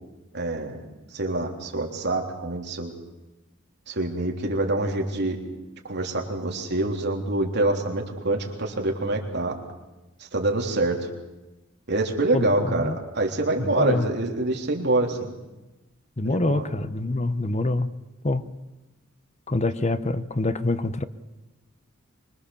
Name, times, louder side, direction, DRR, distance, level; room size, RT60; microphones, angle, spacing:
voice 1, 0.3-0.8 1.1-2.9 3.9-5.4 5.8-9.6 10.2-11.1 11.9-15.4 16.3-16.6, right 2 dB, 55° right, 1 dB, 3.4 m, -26 dB
voice 2, 12.3-13.0 13.6-14.1 16.2-17.9 18.2-18.5 19.5-21.0, left 2 dB, 35° left, 12 dB, 0.9 m, -25 dB
25.5 x 23.0 x 7.1 m, 1.0 s
head